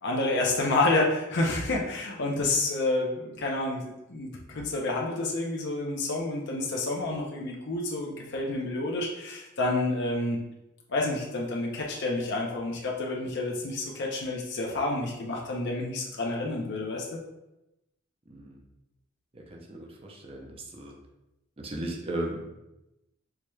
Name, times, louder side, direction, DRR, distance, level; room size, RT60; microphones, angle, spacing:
voice 1, 0.0-10.4 10.9-17.2, left 2 dB, 55° left, -1 dB, 0.5 m, -29 dB
voice 2, 18.3-18.6 19.3-20.9 21.6-22.6, right 1 dB, 30° right, 0 dB, 0.5 m, -36 dB
4.7 x 3.0 x 2.2 m, 0.92 s
head